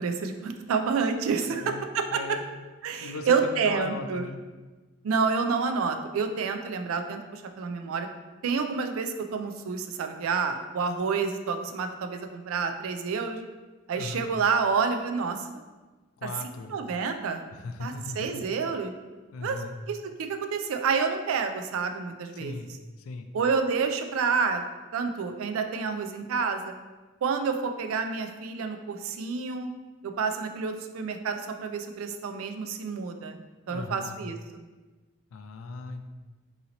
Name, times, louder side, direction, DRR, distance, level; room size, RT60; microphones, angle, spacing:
voice 1, 0.0-2.4 2.8-4.3 5.0-8.1 8.4-13.4 13.9-15.5 16.7-17.4 17.8-18.9 19.4-19.6 19.9-20.0 20.3-22.5 23.3-24.6 24.9-26.7 27.2-29.7 30.0-33.4 33.7-34.6, right 5 dB, 80° right, 7 dB, 0.3 m, -29 dB
voice 2, 1.5-2.4 3.0-4.4 14.0-14.2 16.2-16.7 17.5-18.4 19.3-19.7 22.3-22.7 23.0-23.3 33.7-34.2 35.3-36.1, left 3 dB, 85° left, 7 dB, 0.4 m, -38 dB
2.8 x 2.8 x 3.9 m, 1.2 s
head